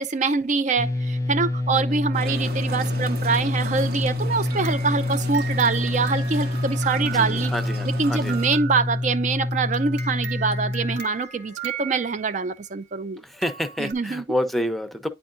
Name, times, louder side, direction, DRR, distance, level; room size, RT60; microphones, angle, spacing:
voice 1, 0.0-7.5 7.8-13.2 13.8-14.2, right 4 dB, 45° right, 0.5 m, -25 dB
sound 1, 0.8-11.0, left 2 dB, 20° left, 0.3 m, -26 dB
sound 2, 2.1-8.5, right 2 dB, 60° right, 1.1 m, -36 dB
voice 2, 2.2-2.6 7.0-8.4 13.2-15.1, equal, ahead, 0.7 m, -29 dB
sound 3, 4.5-12.5 13.4-13.9, right 7 dB, 85° right, 1.9 m, -38 dB
9.8 x 4.4 x 2.6 m
head